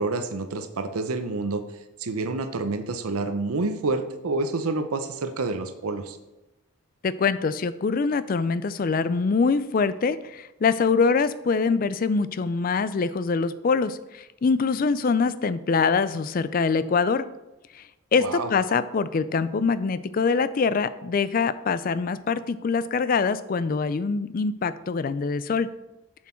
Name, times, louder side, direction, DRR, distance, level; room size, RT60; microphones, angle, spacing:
voice 1, 0.0-1.6 2.0-6.2 18.2-18.5, right 3 dB, 85° right, 8 dB, 0.7 m, -28 dB
voice 2, 7.0-17.3 17.7-17.8 18.1-25.7, left 4 dB, 40° left, 15 dB, 0.3 m, -24 dB
7.2 x 6.2 x 4.4 m, 0.99 s
head